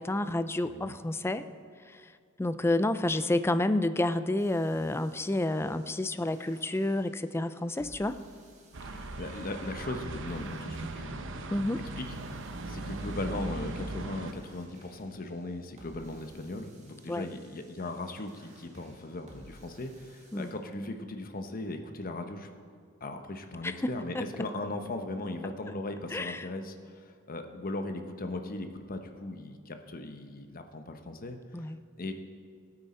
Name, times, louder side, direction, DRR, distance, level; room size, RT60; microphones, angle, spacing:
voice 1, 0.0-1.4 2.4-8.2 11.5-11.8 17.1-17.3 20.3-20.5 23.6-23.7 24.1-24.2 26.1-26.5 31.5-31.8, left 1 dB, 10° left, 12 dB, 0.4 m, -29 dB
voice 2, 0.6-1.0 8.8-11.4 11.9-12.1 12.7-22.5 23.0-31.4 32.0-32.1, left 2 dB, 45° left, 6 dB, 1.0 m, -38 dB
sound 1, 4.4-20.5, right 1 dB, 35° right, 2.0 m, -58 dB
sound 2, 8.7-14.3, right 2 dB, 65° right, 0.8 m, -39 dB
17.0 x 8.9 x 4.3 m, 2.2 s
head